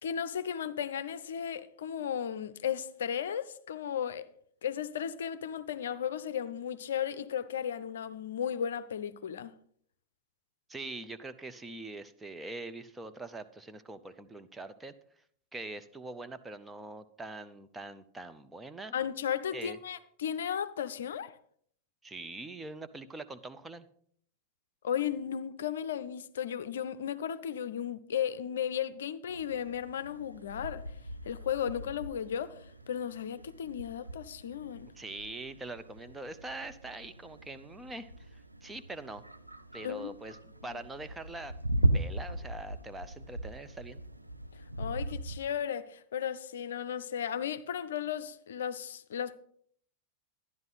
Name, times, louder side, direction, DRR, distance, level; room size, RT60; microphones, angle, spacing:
voice 1, 0.0-4.3 4.6-9.5 18.9-21.4 24.8-30.8 31.3-34.9 39.8-40.1 44.8-49.4, left 8 dB, 60° left, 0.5 m, -35 dB
voice 2, 10.7-14.9 15.5-18.9 19.5-19.8 22.0-23.9 35.0-39.2 39.7-41.6 41.8-44.0, right 2 dB, 10° right, 0.7 m, -43 dB
sound 1, 29.3-45.4, right 1 dB, 85° right, 0.6 m, -38 dB
12.0 x 11.0 x 4.0 m
figure-of-eight pair, 90°, 0 cm